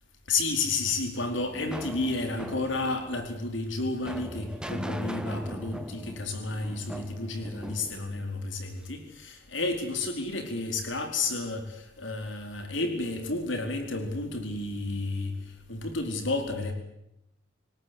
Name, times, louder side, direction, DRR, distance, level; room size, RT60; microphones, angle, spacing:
voice 1, 0.3-15.4 15.7-16.7, left 3 dB, 85° left, 5 dB, 4.6 m, -31 dB
sound 1, 0.9-9.0, equal, 5° right, 1.7 m, -40 dB
28.0 x 18.5 x 8.1 m, 0.82 s
head